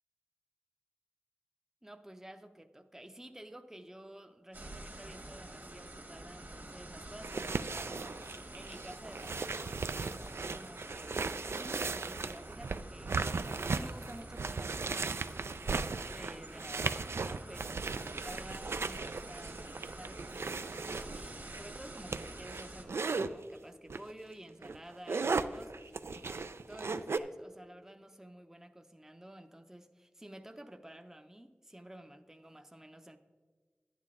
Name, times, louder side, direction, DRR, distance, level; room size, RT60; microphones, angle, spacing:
voice 1, 1.8-17.8 18.2-33.2, right 1 dB, 10° right, 7 dB, 0.5 m, -52 dB
sound 1, 4.5-22.8, right 1 dB, 50° right, 1.4 m, -48 dB
sound 2, 7.2-23.3 23.9-24.1 24.5-27.2, right 4 dB, 80° right, 0.3 m, -37 dB
11.0 x 8.6 x 3.6 m, 1.5 s
wide cardioid pair, 60°, 4 cm